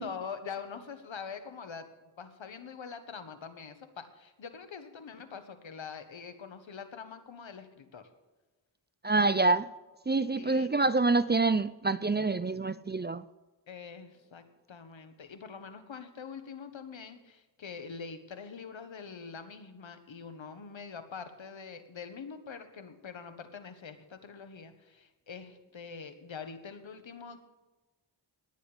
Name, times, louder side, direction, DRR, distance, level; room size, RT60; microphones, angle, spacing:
voice 1, 0.0-1.9 2.2-8.1 10.3-10.7 13.7-27.4, left 6 dB, 90° left, 1.4 m, -44 dB
voice 2, 9.0-9.7 10.1-13.2, right 3 dB, 25° right, 0.4 m, -26 dB
17.5 x 10.0 x 5.1 m
wide cardioid pair, 90°, 45 cm